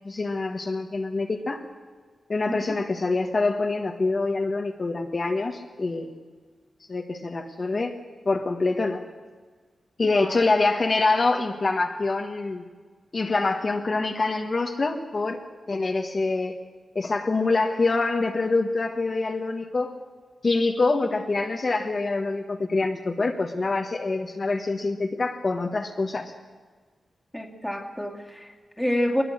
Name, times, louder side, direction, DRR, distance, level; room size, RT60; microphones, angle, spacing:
voice 1, 0.0-1.6 2.3-6.1 6.9-7.9 8.2-9.0 10.0-12.6 13.1-15.4 15.7-16.6 16.9-19.9 20.4-26.3, left 3 dB, 40° left, 3 dB, 1.4 m, -25 dB
voice 2, 10.0-10.4 27.3-29.2, left 1 dB, 5° left, 2 dB, 2.3 m, -28 dB
21.5 x 20.0 x 6.6 m, 1.5 s
wide cardioid pair, 125°, 0 cm